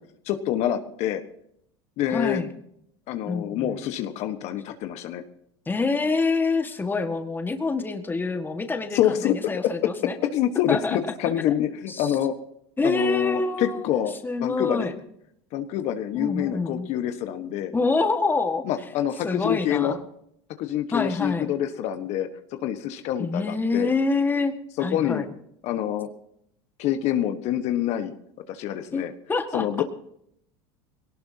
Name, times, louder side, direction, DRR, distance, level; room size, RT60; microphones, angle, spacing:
voice 1, 0.2-1.2 2.0-2.4 3.1-5.2 8.9-9.4 10.3-12.3 12.8-14.9 15.5-17.7 18.6-20.0 20.6-22.3 22.6-23.9 24.8-25.2 25.6-26.1 26.8-28.1 28.5-29.1 29.5-29.8, left 11 dB, 55° left, 8 dB, 1.3 m, -26 dB
voice 2, 2.1-2.5 3.3-3.8 5.6-10.1 10.7-11.0 11.9-12.1 12.8-13.8 14.2-14.9 16.1-16.9 17.7-18.6 19.2-20.0 20.9-21.5 23.2-24.5 24.8-25.3 28.9-29.6, left 3 dB, 15° left, 6 dB, 1.7 m, -26 dB
21.0 x 18.0 x 2.8 m, 0.72 s
supercardioid pair, 110°, 14 cm